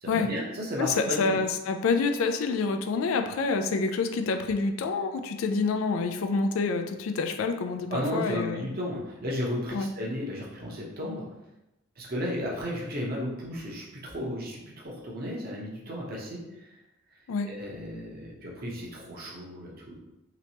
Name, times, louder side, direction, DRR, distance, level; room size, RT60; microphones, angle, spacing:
voice 1, 0.0-1.4 7.9-11.2 12.0-16.4 17.4-19.9, equal, 45° right, -3 dB, 0.8 m, -34 dB
voice 2, 0.8-8.7 9.7-9.9 17.3-17.5, left 4 dB, 75° left, 7 dB, 0.3 m, -27 dB
3.2 x 3.0 x 2.8 m, 0.95 s
head